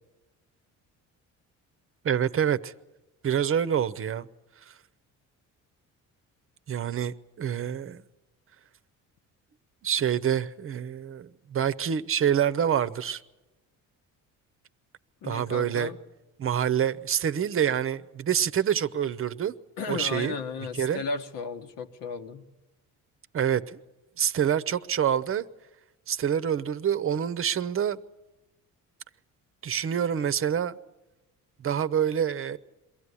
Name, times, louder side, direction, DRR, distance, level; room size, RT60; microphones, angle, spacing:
voice 1, 2.0-2.7 3.2-4.3 4.7-4.8 6.7-8.0 9.8-13.2 15.2-15.9 16.4-19.5 19.9-20.4 20.7-21.0 23.3-23.8 24.2-25.5 26.1-28.0 29.6-30.7 31.6-32.6, right 9 dB, 40° right, 0.8 m, -26 dB
voice 2, 15.2-16.0 19.8-22.4, left 4 dB, 80° left, 1.6 m, -34 dB
23.0 x 15.5 x 9.8 m
cardioid pair, 125°, 33 cm